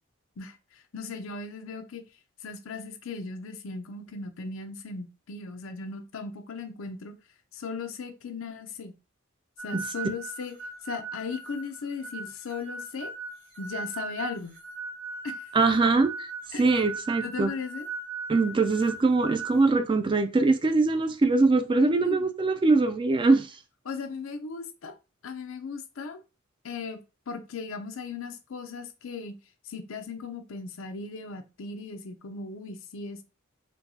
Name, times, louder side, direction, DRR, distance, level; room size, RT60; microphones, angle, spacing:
voice 1, 0.4-2.0 2.4-7.1 7.5-8.9 9.6-10.5 10.8-13.1 13.6-14.6 15.2-15.5 16.5-16.7 17.2-17.9 22.0-22.3 23.8-24.9 25.2-26.2 26.6-27.0 27.3-29.4 29.6-33.2, left 4 dB, 75° left, 0.6 m, -37 dB
sound 1, 9.6-19.6, right 4 dB, 60° right, 1.5 m, -39 dB
voice 2, 15.5-16.1 16.6-17.5 18.3-23.6, right 3 dB, 25° right, 0.3 m, -22 dB
4.4 x 2.2 x 2.7 m
head